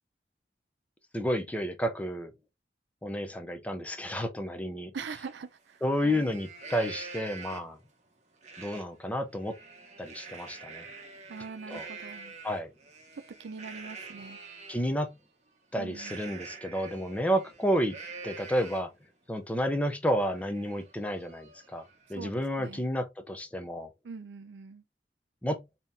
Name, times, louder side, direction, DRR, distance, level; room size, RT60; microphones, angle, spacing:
voice 1, 1.1-2.3 3.0-4.9 5.8-7.8 8.6-9.6 10.0-10.9 11.7-11.9 12.4-12.7 14.7-15.1 15.7-17.9 18.2-18.9 19.3-21.8 22.1-23.9 25.4-25.6, equal, 10° left, 0.4 m, -31 dB
voice 2, 4.9-6.3 11.3-12.4 13.1-14.4 15.8-16.2 22.1-22.9 24.0-24.8, right 5 dB, 85° right, 0.5 m, -43 dB
Livestock farm animals working animals, 5.2-5.3 5.7-7.8 8.4-8.8 9.2-14.8 15.9-19.0 19.4-19.5 19.9-22.2, right 4 dB, 40° right, 0.9 m, -46 dB
3.5 x 2.8 x 2.6 m
head